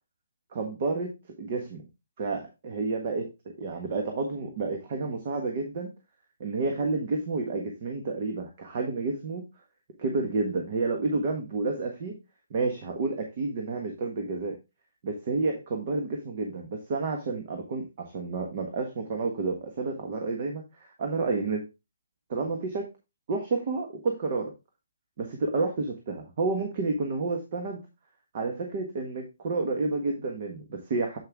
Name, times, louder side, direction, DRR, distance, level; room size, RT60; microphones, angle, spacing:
voice 1, 0.5-1.9 2.2-5.9 6.4-9.5 10.0-12.2 12.5-14.6 15.0-21.7 22.3-22.9 23.3-24.5 25.2-27.8 28.3-31.2, right 3 dB, 40° right, 2 dB, 1.5 m, -30 dB
7.8 x 5.5 x 3.6 m, 0.26 s
figure-of-eight pair, 145°, 0 cm